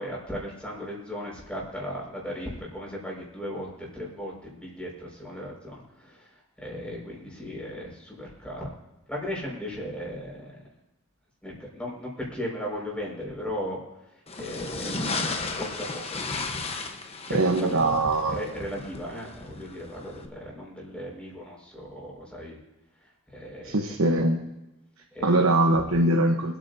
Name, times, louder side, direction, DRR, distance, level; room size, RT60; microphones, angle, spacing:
voice 1, 0.0-8.7 9.1-10.6 11.4-13.8 14.4-16.2 17.3-17.8 18.3-22.6 23.3-23.7 25.1-25.4 25.7-25.8, equal, 5° left, -3 dB, 5.4 m, -36 dB
sound 1, 14.3-20.3, left 3 dB, 30° left, 1.0 m, -34 dB
voice 2, 17.3-18.4 23.6-24.4 25.2-26.6, right 2 dB, 85° right, 2 dB, 1.1 m, -22 dB
27.0 x 9.4 x 2.7 m, 0.98 s
head